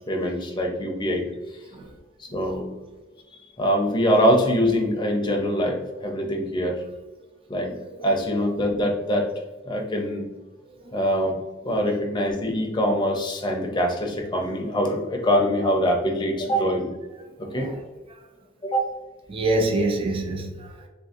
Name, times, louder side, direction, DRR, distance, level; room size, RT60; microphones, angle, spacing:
voice 1, 0.1-1.3 1.5-1.6 2.2-2.7 3.6-6.8 7.5-7.7 8.0-9.3 9.7-10.3 10.9-16.9 17.5-17.7 18.6-18.9, equal, 25° left, 0.6 m, -24 dB
voice 2, 7.7-8.1 10.8-11.0 17.4-17.8 18.1-18.3 19.3-20.9, right 2 dB, 25° right, 0.4 m, -27 dB
3.6 x 2.6 x 2.4 m
head